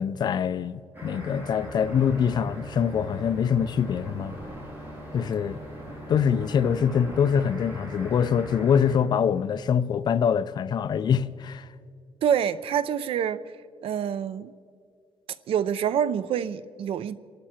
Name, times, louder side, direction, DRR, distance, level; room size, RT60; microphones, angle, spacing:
voice 1, 0.0-4.4 5.1-5.6 6.1-11.7, left 7 dB, 45° left, 0.5 m, -24 dB
sound 1, 0.9-9.0, right 1 dB, 20° right, 4.2 m, -40 dB
voice 2, 12.2-13.4 13.8-14.5 15.5-17.2, right 8 dB, 65° right, 0.6 m, -26 dB
27.0 x 12.0 x 4.4 m
cardioid pair, 160°, 10 cm